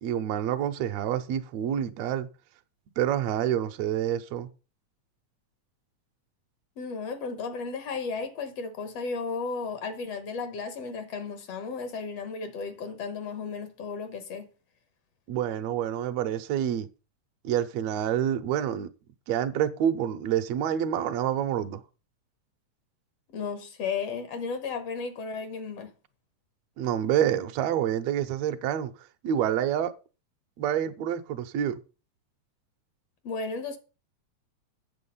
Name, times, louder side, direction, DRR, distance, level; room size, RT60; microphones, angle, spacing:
voice 1, 0.0-2.3 3.0-4.5 15.3-16.9 17.4-18.9 19.3-21.8 26.8-28.9 29.2-29.9 30.6-31.8, right 10 dB, 75° right, 1.9 m, -27 dB
voice 2, 6.8-14.5 23.3-25.9 33.2-33.8, left 4 dB, 65° left, 2.0 m, -34 dB
8.6 x 7.2 x 5.5 m
omnidirectional pair, 3.3 m